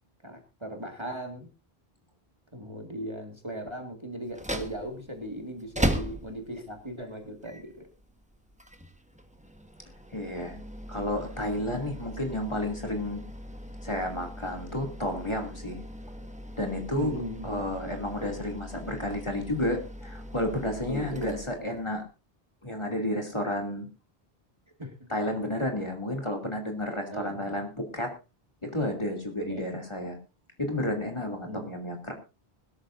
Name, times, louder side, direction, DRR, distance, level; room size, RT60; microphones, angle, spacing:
voice 1, 0.2-1.5 2.5-7.9 16.9-17.6 20.9-21.2 24.8-25.1 27.1-27.6 29.5-29.6 31.4-31.7, equal, 25° right, 4 dB, 2.1 m, -38 dB
sound 1, 4.2-22.0, equal, 5° right, 1.3 m, -38 dB
voice 2, 10.1-10.6 10.9-13.2 13.8-15.9 16.6-22.1 22.6-23.9 25.1-28.2 28.6-30.2 30.6-32.1, left 1 dB, 25° left, 3 dB, 2.8 m, -31 dB
21.0 x 13.0 x 2.6 m, 0.29 s
omnidirectional pair, 1.1 m